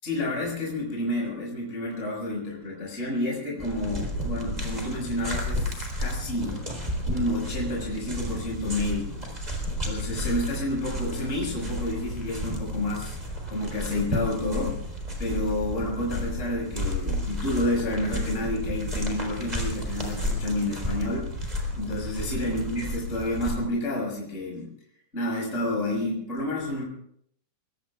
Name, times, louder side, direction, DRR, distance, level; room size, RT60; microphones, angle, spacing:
voice 1, 0.0-6.6 7.0-9.3 9.8-13.2 13.5-14.9 15.2-21.4 21.8-24.7 25.1-26.8, left 1 dB, 15° left, -3 dB, 6.0 m, -30 dB
sound 1, 3.6-23.6, equal, 10° right, 3.4 m, -32 dB
25.0 x 21.5 x 2.5 m, 0.69 s
omnidirectional pair, 4.8 m